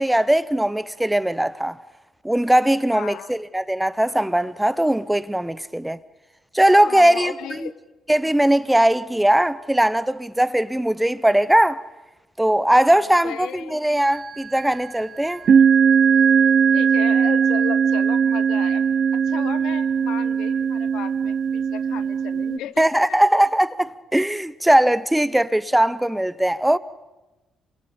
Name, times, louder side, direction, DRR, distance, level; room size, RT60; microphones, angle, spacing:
voice 1, 0.0-1.8 2.2-6.0 6.5-7.7 8.1-11.8 12.4-15.4 22.8-26.8, right 1 dB, 5° right, 0.9 m, -19 dB
voice 2, 2.9-3.3 6.7-7.7 12.9-13.9 16.7-18.9 19.1-23.2, left 11 dB, 85° left, 0.9 m, -35 dB
sound 1, 14.1-14.6 15.4-22.6, right 7 dB, 55° right, 0.7 m, -19 dB
27.5 x 23.5 x 5.2 m
cardioid pair, 90°, 0 cm